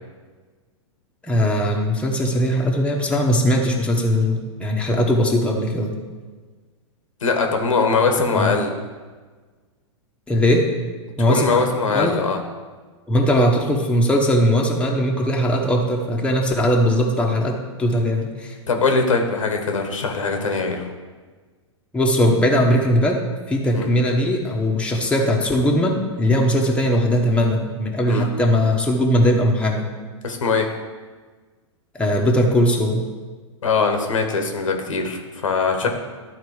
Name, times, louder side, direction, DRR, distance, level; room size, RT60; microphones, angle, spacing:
voice 1, 1.2-5.9 8.3-8.5 10.3-10.7 11.2-11.7 11.9-12.2 13.1-18.6 21.9-23.2 23.5-29.9 31.9-33.0 35.8-35.9, equal, 5° left, -1 dB, 1.2 m, -19 dB
voice 2, 7.2-8.7 11.3-12.4 18.7-20.9 23.7-23.9 28.1-28.3 30.2-30.7 33.6-35.9, left 4 dB, 90° left, 4 dB, 1.3 m, -21 dB
12.0 x 4.1 x 4.9 m, 1.4 s
hypercardioid pair, 120°, 16 cm